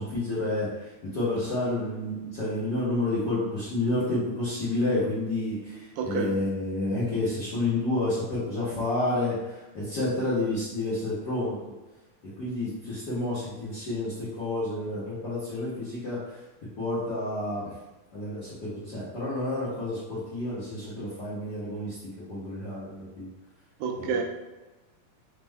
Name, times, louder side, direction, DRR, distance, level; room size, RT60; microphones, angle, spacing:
voice 1, 0.0-11.6 12.4-16.4 16.8-17.7 18.1-23.3 24.0-24.2, left 2 dB, 85° left, -12 dB, 0.9 m, -30 dB
voice 2, 6.0-6.4 23.8-24.2, right 5 dB, 80° right, 3 dB, 1.7 m, -29 dB
5.0 x 2.1 x 3.4 m, 1.1 s
omnidirectional pair, 3.7 m